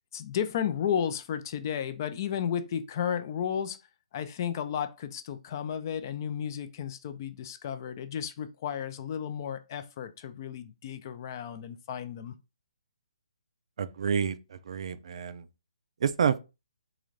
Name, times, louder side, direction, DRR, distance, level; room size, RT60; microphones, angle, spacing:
voice 1, 0.1-3.8 4.1-12.3, left 8 dB, 30° left, 0.4 m, -33 dB
voice 2, 13.8-15.5 16.0-16.4, right 7 dB, 55° right, 0.4 m, -29 dB
3.8 x 2.5 x 3.1 m
hypercardioid pair, 160°, 4 cm